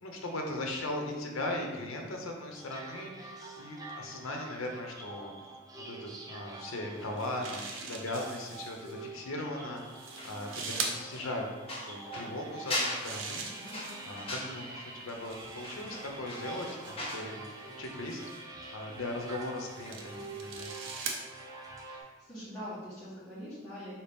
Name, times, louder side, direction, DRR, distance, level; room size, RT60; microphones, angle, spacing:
voice 1, 0.0-5.3 5.8-11.4 11.9-13.5 14.1-17.4 17.8-20.7, left 1 dB, 85° left, 2 dB, 0.7 m, -38 dB
sound 1, 2.5-22.0, right 3 dB, 20° right, 0.5 m, -47 dB
sound 2, 7.0-8.9 9.8-11.0 12.6-14.2 15.1-17.2 18.1-18.4 19.2-21.2, right 4 dB, 70° right, 0.6 m, -41 dB
sound 3, 10.1-17.3 17.6-17.8, left 1 dB, 30° left, 0.8 m, -39 dB
voice 2, 13.6-14.3 21.9-23.9, equal, 5° left, -14 dB, 1.3 m, -44 dB
4.4 x 2.8 x 3.5 m, 1.4 s
head